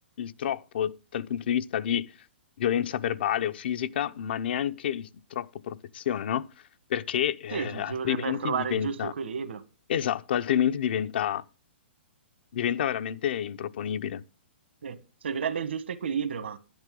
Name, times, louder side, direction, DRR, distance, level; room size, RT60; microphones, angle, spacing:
voice 1, 0.2-2.1 2.6-6.5 6.9-9.1 9.9-11.4 12.5-14.2, left 9 dB, 60° left, 0.7 m, -29 dB
voice 2, 7.5-9.6 14.8-16.6, right 6 dB, 75° right, 1.5 m, -32 dB
10.5 x 10.5 x 3.8 m
hypercardioid pair, 135°, 6 cm